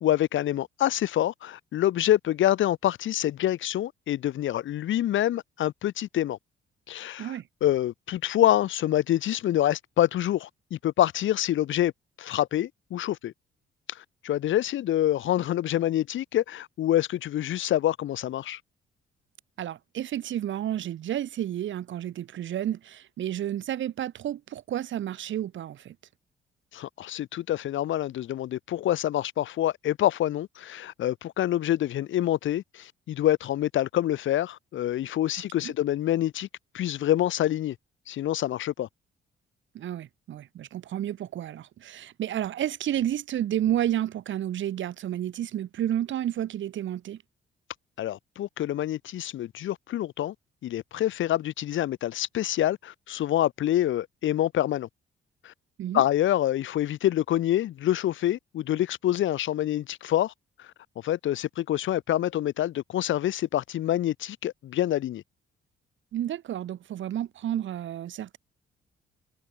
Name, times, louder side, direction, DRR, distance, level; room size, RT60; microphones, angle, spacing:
voice 1, 0.0-6.4 6.9-11.9 12.2-13.3 13.9-18.6 26.7-36.5 36.7-37.8 38.1-38.9 48.0-50.3 50.6-54.9 55.4-55.5 55.9-60.3 60.6-60.7 61.0-65.2, left 12 dB, 75° left, 2.2 m, -26 dB
voice 2, 19.6-25.9 35.6-35.7 39.7-47.2 55.8-56.0 66.1-68.4, right 11 dB, 70° right, 5.6 m, -31 dB
cardioid pair, 90°, 20 cm